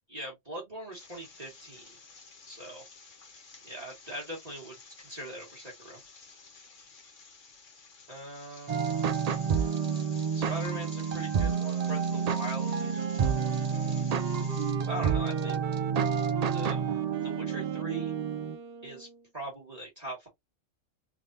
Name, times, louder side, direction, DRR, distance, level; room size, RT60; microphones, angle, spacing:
voice 1, 0.1-1.9 2.5-2.8 3.6-6.0 8.1-8.9 10.3-13.5 14.9-15.6 16.5-16.8 17.2-18.1 18.8-19.1 19.3-20.3, right 1 dB, 30° right, 1.7 m, -41 dB
sound 1, 0.9-14.7, left 4 dB, 75° left, 1.5 m, -52 dB
sound 2, 8.7-18.6, right 6 dB, 75° right, 0.3 m, -29 dB
Wind instrument woodwind instrument, 12.6-19.3, right 6 dB, 60° right, 0.7 m, -42 dB
3.6 x 3.3 x 2.6 m
omnidirectional pair, 1.3 m